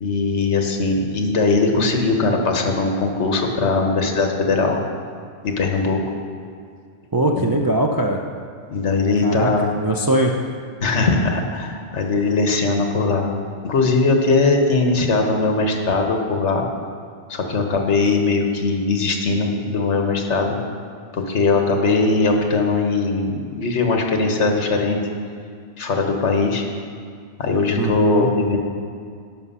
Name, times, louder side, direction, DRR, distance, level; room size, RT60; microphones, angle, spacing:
voice 1, 0.0-4.8 5.4-6.0 7.3-7.5 8.7-9.7 10.8-13.3 13.6-16.6 17.3-20.6 21.1-25.0 25.8-26.6 27.4-28.6, left 3 dB, 70° left, 3 dB, 1.4 m, -20 dB
voice 2, 7.1-8.2 9.2-9.5 9.8-10.4 27.8-28.3, right 1 dB, 30° right, 1 dB, 0.4 m, -21 dB
11.0 x 6.0 x 5.6 m, 2.3 s
omnidirectional pair, 1.2 m